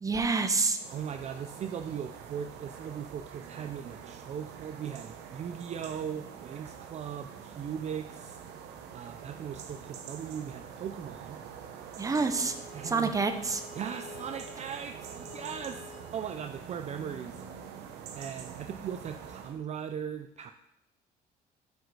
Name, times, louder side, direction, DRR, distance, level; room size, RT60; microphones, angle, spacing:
voice 1, 0.0-0.8 12.0-12.5 12.8-13.6, right 4 dB, 20° right, 8 dB, 0.7 m, -27 dB
sound 1, 0.7-19.6, right 7 dB, 80° right, 0.9 m, -45 dB
voice 2, 0.9-8.4 8.9-11.4 12.7-13.1 13.7-17.4 18.2-20.5, right 8 dB, 40° right, 7 dB, 0.4 m, -39 dB
Bowed string instrument, 12.1-17.0, left 4 dB, 40° left, 1.9 m, -51 dB
8.1 x 5.0 x 4.8 m, 0.82 s
cardioid pair, 110°, 17 cm